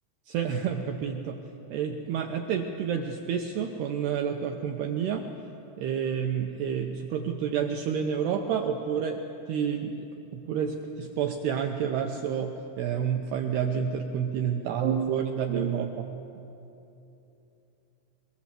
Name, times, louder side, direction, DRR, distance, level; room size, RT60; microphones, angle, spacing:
voice 1, 0.3-1.4 1.7-5.2 5.8-9.2 9.5-10.1 10.3-16.1, right 7 dB, 85° right, 4 dB, 2.3 m, -29 dB
22.5 x 22.0 x 7.6 m, 2.9 s
omnidirectional pair, 5.9 m